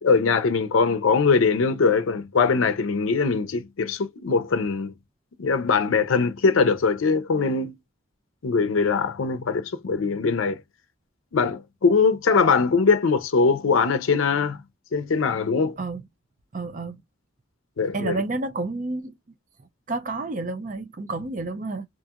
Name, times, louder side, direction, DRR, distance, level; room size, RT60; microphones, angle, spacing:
voice 1, 0.0-4.9 5.4-7.7 8.4-10.6 11.3-14.6 14.9-15.8 17.8-18.2, left 4 dB, 85° left, 0.5 m, -21 dB
voice 2, 16.5-17.0 17.9-19.2 19.9-21.9, right 3 dB, 40° right, 0.5 m, -30 dB
2.8 x 2.5 x 2.3 m
head